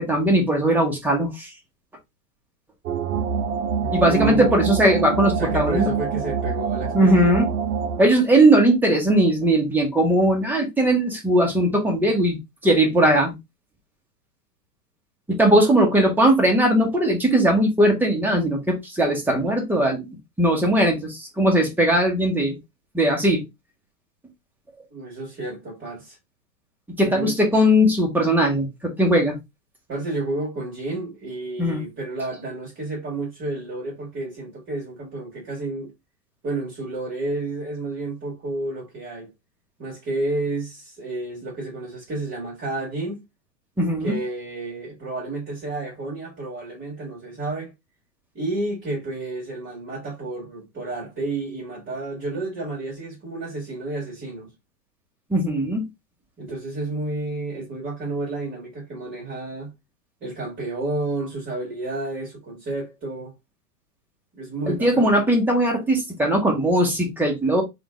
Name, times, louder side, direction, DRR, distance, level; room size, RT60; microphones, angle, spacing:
voice 1, 0.0-1.5 3.9-5.9 6.9-7.5 8.0-12.4 12.6-13.3 15.3-20.1 20.4-22.6 22.9-23.4 27.0-29.3 31.6-31.8 43.8-44.1 55.3-55.8 64.7-67.6, right 1 dB, 5° right, 1.0 m, -19 dB
sound 1, 2.9-8.1, right 6 dB, 65° right, 0.7 m, -26 dB
voice 2, 3.8-7.5 24.9-26.2 27.1-27.3 29.9-35.9 36.4-39.3 39.8-43.2 44.0-47.7 48.3-54.5 56.4-59.7 60.2-63.3 64.3-65.2, right 2 dB, 25° right, 1.8 m, -31 dB
3.7 x 2.5 x 3.6 m
hypercardioid pair, 110°, 49 cm